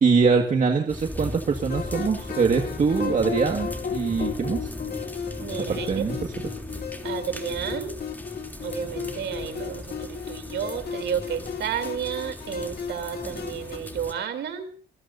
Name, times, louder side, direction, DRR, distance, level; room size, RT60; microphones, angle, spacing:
voice 1, 0.0-4.7 5.7-6.3, right 5 dB, 45° right, 3 dB, 2.0 m, -23 dB
sound 1, 0.9-14.1, left 1 dB, 10° left, 3.2 m, -38 dB
sound 2, 1.7-13.8, left 6 dB, 60° left, 2.6 m, -35 dB
voice 2, 5.4-6.0 7.0-8.0 8.6-14.7, right 8 dB, 80° right, 8 dB, 3.4 m, -31 dB
27.0 x 19.0 x 2.8 m, 0.43 s
cardioid pair, 100°, 19 cm